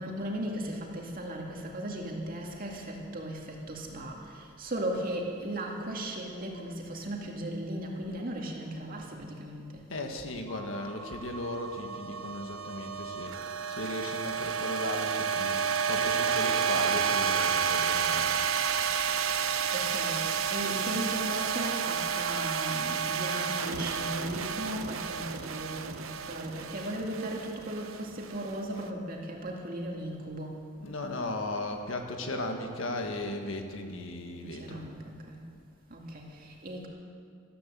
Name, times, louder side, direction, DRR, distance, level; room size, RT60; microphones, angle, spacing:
voice 1, 0.0-9.9 19.3-30.6 34.4-35.4 35.9-36.9, right 1 dB, 40° right, 0 dB, 2.3 m, -37 dB
voice 2, 9.9-13.4 13.7-15.6 15.9-18.3 30.8-34.8, left 1 dB, 70° left, 4 dB, 1.7 m, -36 dB
sound 1, 10.5-28.8, right 7 dB, 70° right, 0.8 m, -31 dB
14.0 x 13.5 x 7.7 m, 2.3 s
head